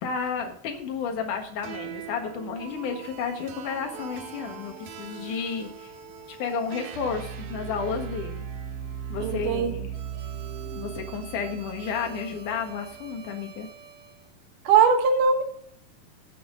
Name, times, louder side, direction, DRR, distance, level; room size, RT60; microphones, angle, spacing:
voice 1, 0.0-5.9 6.4-8.5 9.1-9.9 10.6-13.7, left 6 dB, 70° left, 4 dB, 2.9 m, -32 dB
sound 1, 1.6-14.1, right 8 dB, 90° right, 3.1 m, -39 dB
voice 2, 9.2-9.7 14.7-15.4, right 6 dB, 70° right, 6 dB, 2.8 m, -20 dB
15.5 x 7.3 x 3.9 m, 0.65 s
omnidirectional pair, 4.0 m